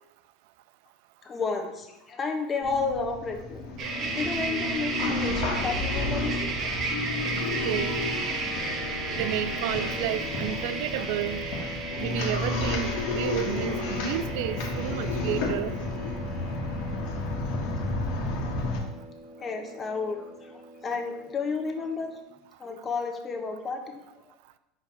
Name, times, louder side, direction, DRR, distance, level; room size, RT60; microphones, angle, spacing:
voice 1, 1.2-3.6 4.1-6.4 19.4-22.2 22.6-24.2, left 4 dB, 30° left, 4 dB, 1.2 m, -32 dB
sound 1, 2.6-18.8, left 2 dB, 70° left, 1.6 m, -32 dB
sound 2, 3.8-22.2, right 3 dB, 45° right, 1.5 m, -35 dB
Wind instrument woodwind instrument, 6.2-11.9, left 5 dB, 55° left, 1.1 m, -43 dB
voice 2, 7.4-8.0 9.1-11.4 12.0-15.8, right 12 dB, 70° right, 13 dB, 0.3 m, -31 dB
5.2 x 4.7 x 5.9 m, 0.92 s
supercardioid pair, 105°, 0 cm